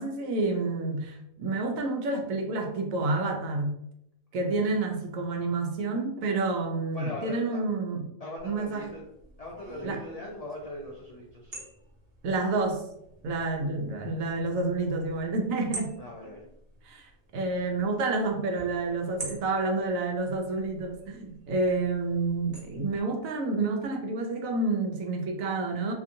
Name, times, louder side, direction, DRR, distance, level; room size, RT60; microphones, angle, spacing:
voice 1, 0.0-3.8 4.3-8.1 8.4-8.9 9.8-10.1 12.2-12.8 13.2-15.9 16.8-25.9, right 3 dB, 80° right, 3 dB, 1.0 m, -29 dB
voice 2, 6.9-7.6 8.2-9.0 9.4-11.6 16.0-16.5, left 1 dB, 70° left, -3 dB, 0.3 m, -40 dB
sound 1, 8.4-23.0, right 2 dB, 50° right, 0.9 m, -48 dB
2.8 x 2.6 x 2.6 m, 0.78 s
omnidirectional pair, 1.4 m